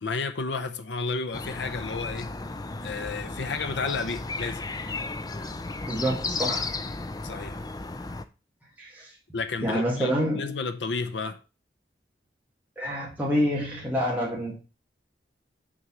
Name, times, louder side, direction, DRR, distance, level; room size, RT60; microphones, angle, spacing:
voice 1, 0.0-2.3 2.8-4.6 7.2-7.6 9.3-11.4, left 4 dB, 85° left, 0.6 m, -31 dB
sound 1, 1.3-8.2, left 3 dB, 20° left, 0.5 m, -34 dB
voice 2, 5.9-6.7 8.8-9.1 9.6-10.6 12.8-14.6, equal, 10° right, 1.8 m, -27 dB
6.3 x 4.0 x 6.1 m
head